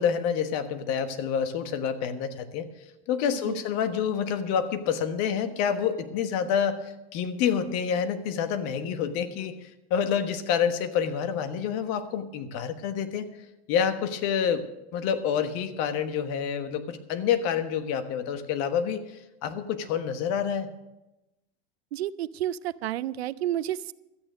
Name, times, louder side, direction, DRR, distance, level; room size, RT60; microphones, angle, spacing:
voice 1, 0.0-2.7 3.1-13.3 13.7-14.6 14.9-19.0 19.4-20.7, left 7 dB, 55° left, 9 dB, 1.4 m, -28 dB
voice 2, 3.3-3.6 21.9-23.9, right 12 dB, 85° right, 18 dB, 0.5 m, -31 dB
13.0 x 8.9 x 6.4 m, 0.97 s
hypercardioid pair, 105°, 31 cm